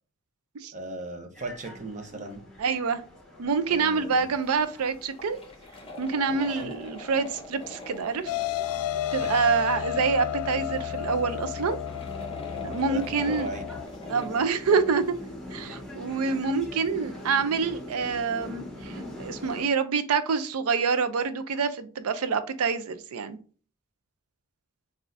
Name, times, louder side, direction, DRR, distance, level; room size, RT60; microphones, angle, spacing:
voice 1, 0.7-2.4 3.7-4.3 6.3-6.7 9.2-9.4 12.5-13.7, right 2 dB, 35° right, 0.7 m, -38 dB
sound 1, 1.3-19.7, left 1 dB, 5° left, 0.9 m, -43 dB
voice 2, 2.6-3.0 3.4-5.4 6.0-8.3 9.1-11.8 12.6-13.5 14.1-15.0 15.5-23.4, right 5 dB, 75° right, 0.5 m, -26 dB
sound 2, 4.4-8.4 8.8-8.9 9.1-9.2 10.8-15.2 15.6-15.7, left 2 dB, 25° left, 0.7 m, -44 dB
sound 3, 8.3-13.8, left 11 dB, 80° left, 0.3 m, -32 dB
6.1 x 2.5 x 2.6 m
head